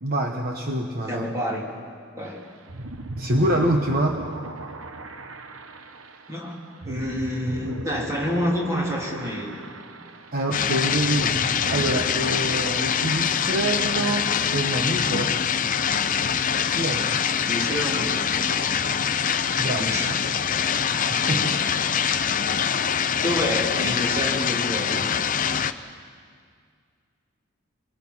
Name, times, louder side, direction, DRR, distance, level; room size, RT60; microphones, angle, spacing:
voice 1, 0.0-1.3 3.2-4.2 10.3-15.4 16.6-17.2 19.6-19.9 20.2-20.3 21.1-21.5, right 1 dB, 45° right, 3 dB, 1.2 m, -26 dB
voice 2, 1.1-1.7 2.2-2.4 6.3-9.5 17.5-18.6 19.0-19.2 19.8-20.1 21.3-22.0 23.2-25.1, equal, 15° right, -3 dB, 3.5 m, -29 dB
sound 1, 2.2-13.6, right 2 dB, 75° right, 1.1 m, -37 dB
sound 2, 10.5-25.7, left 7 dB, 40° left, 0.6 m, -24 dB
25.5 x 22.0 x 5.6 m, 2.1 s
head